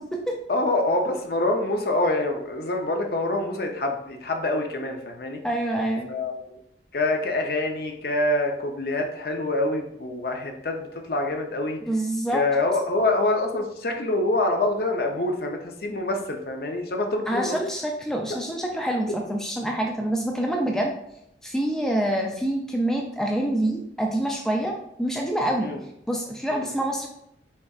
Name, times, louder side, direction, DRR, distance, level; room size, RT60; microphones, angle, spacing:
voice 1, 0.5-5.4 6.1-6.6 6.9-11.8 12.3-17.6 25.6-25.8 26.5-26.7, left 2 dB, 55° left, 3 dB, 0.6 m, -26 dB
voice 2, 5.4-6.1 11.9-12.4 17.3-20.9 21.4-25.7 26.1-27.1, right 1 dB, 5° left, 1 dB, 0.3 m, -26 dB
5.4 x 3.4 x 2.4 m, 0.77 s
head